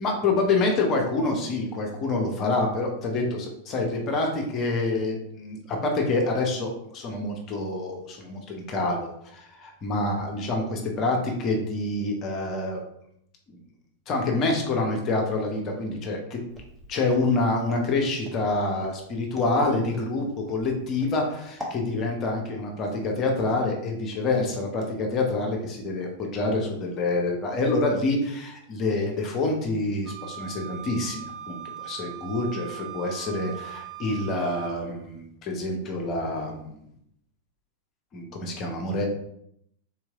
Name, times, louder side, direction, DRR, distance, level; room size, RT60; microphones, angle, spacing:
voice 1, 0.0-12.8 14.1-16.4 16.9-36.8 38.1-39.1, left 2 dB, 30° left, 1 dB, 0.9 m, -27 dB
Walk footsteps, 16.5-21.8, left 1 dB, 10° right, 0.9 m, -43 dB
Wind instrument woodwind instrument, 30.1-34.8, right 11 dB, 45° right, 0.7 m, -40 dB
3.7 x 3.1 x 3.6 m, 0.73 s
figure-of-eight pair, 90°, 0 cm